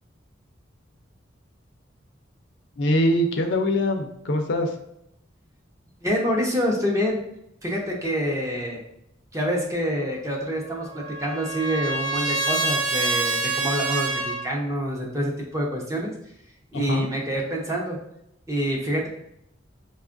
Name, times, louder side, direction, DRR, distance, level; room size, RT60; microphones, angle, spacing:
voice 1, 2.8-4.8 16.7-17.1, left 1 dB, 65° left, 5 dB, 0.5 m, -23 dB
voice 2, 6.0-7.2 7.6-8.8 9.3-16.1 16.7-18.0 18.5-19.1, equal, 15° right, -1 dB, 0.6 m, -26 dB
Trumpet, 10.5-14.4, right 3 dB, 70° right, 0.7 m, -26 dB
5.2 x 2.3 x 2.5 m, 0.77 s
head